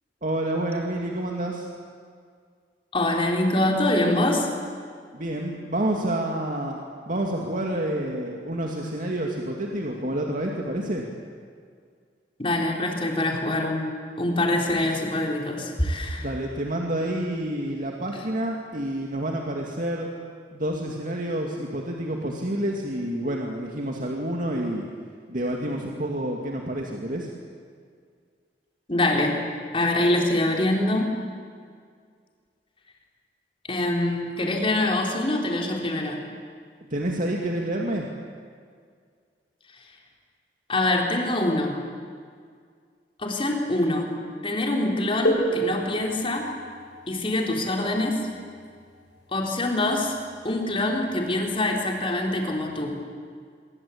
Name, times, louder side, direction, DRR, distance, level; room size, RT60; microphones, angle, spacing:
voice 1, 0.2-1.7 5.1-11.1 16.2-20.1 20.5-24.8 25.3-27.3 36.9-38.1, right 1 dB, 50° right, 0 dB, 2.4 m, -28 dB
voice 2, 2.9-4.5 12.4-16.3 28.9-29.4 29.7-31.1 33.7-36.2 40.7-41.8 43.2-44.1 44.4-46.5 47.1-48.2 49.3-50.2 50.4-53.0, left 1 dB, 30° left, 1 dB, 4.2 m, -24 dB
sound 1, 45.2-50.7 51.7-51.8 52.7-52.9, right 1 dB, 75° left, 7.1 m, -32 dB
26.0 x 23.5 x 8.7 m, 2.1 s
head